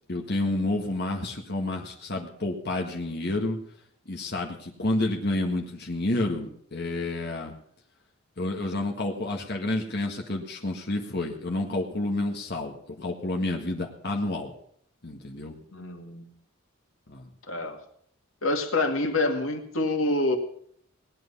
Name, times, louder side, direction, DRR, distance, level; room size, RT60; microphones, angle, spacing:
voice 1, 0.1-3.6 4.1-7.5 8.4-14.5 15.0-15.5 17.1-17.3, left 2 dB, 55° left, 2 dB, 1.7 m, -29 dB
voice 2, 15.7-16.3 17.5-17.8 18.4-20.4, left 2 dB, 80° left, 5 dB, 2.1 m, -26 dB
18.0 x 11.0 x 5.5 m, 0.65 s
head